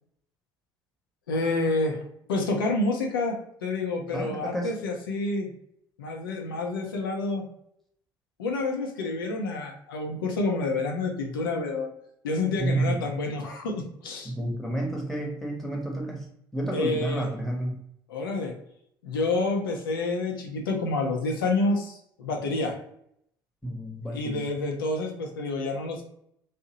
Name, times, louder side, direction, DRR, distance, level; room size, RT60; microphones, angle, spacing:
voice 1, 1.3-2.0 2.3-5.5 6.0-7.4 8.4-11.9 12.2-14.3 16.7-17.3 18.1-18.5 19.0-22.8 24.1-26.0, left 3 dB, 85° left, 1 dB, 0.5 m, -28 dB
voice 2, 4.1-4.7 12.6-13.0 14.2-17.7 23.6-24.5, right 1 dB, 5° left, -1 dB, 0.9 m, -30 dB
2.7 x 2.0 x 2.8 m, 0.71 s
hypercardioid pair, 60°, 11 cm